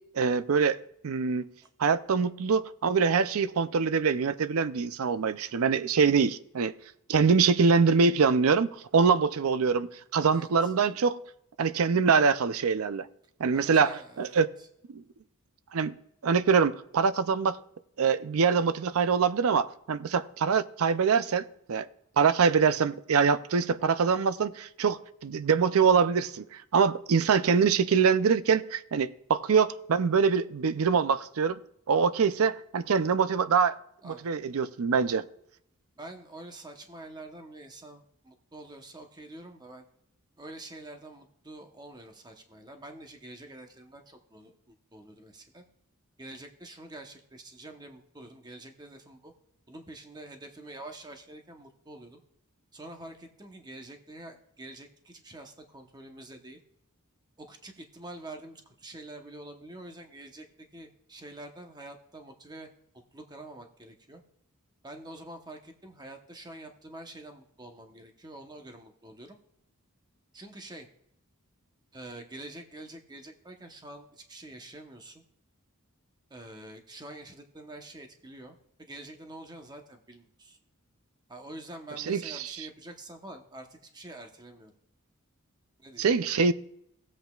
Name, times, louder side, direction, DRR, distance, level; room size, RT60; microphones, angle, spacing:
voice 1, 0.1-0.8 1.0-1.5 1.8-6.7 7.1-11.2 11.6-13.1 13.4-14.5 14.9-15.0 15.7-15.9 16.2-17.6 18.0-21.9 22.2-31.6 31.9-33.8 34.0-35.2 82.0-82.7 86.0-86.5, right 5 dB, 75° right, 0.5 m, -24 dB
voice 2, 10.3-10.7 13.5-14.4 22.6-22.8 34.0-34.3 36.0-39.8 40.4-45.6 46.2-49.3 49.7-52.2 52.7-56.6 57.4-60.4 60.7-62.7 63.1-64.2 64.8-69.4 70.3-70.9 71.9-75.2 76.3-80.6 81.3-84.7 85.8-86.1, right 1 dB, 20° right, 0.9 m, -46 dB
16.5 x 7.9 x 2.4 m
head